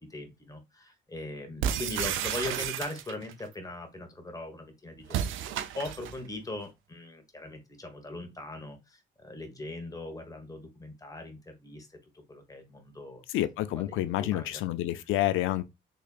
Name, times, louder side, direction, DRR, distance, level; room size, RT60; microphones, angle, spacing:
voice 1, 0.1-13.2 13.8-14.6, left 2 dB, 15° left, 1.3 m, -40 dB
sound 1, 1.6-3.3 5.1-6.2, right 9 dB, 80° right, 0.5 m, -32 dB
voice 2, 13.3-15.6, left 14 dB, 90° left, 0.5 m, -28 dB
3.7 x 3.3 x 2.4 m
cardioid pair, 90°, 20 cm